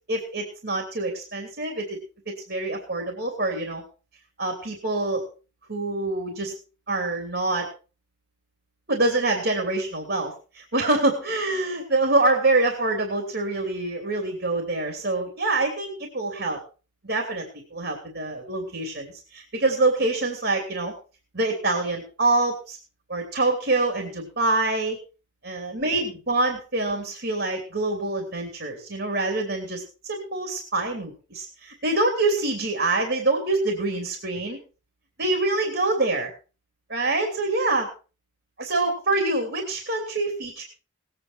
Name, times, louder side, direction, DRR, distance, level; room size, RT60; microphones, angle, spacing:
voice 1, 0.1-2.0 2.3-3.8 4.4-5.2 5.7-6.5 6.9-7.7 8.9-16.6 17.0-17.4 17.7-20.9 21.3-22.8 23.1-25.0 25.4-34.6 35.2-36.3 36.9-37.9 38.6-40.6, right 2 dB, 55° right, 3 dB, 3.1 m, -25 dB
19.5 x 9.3 x 4.5 m, 0.35 s
head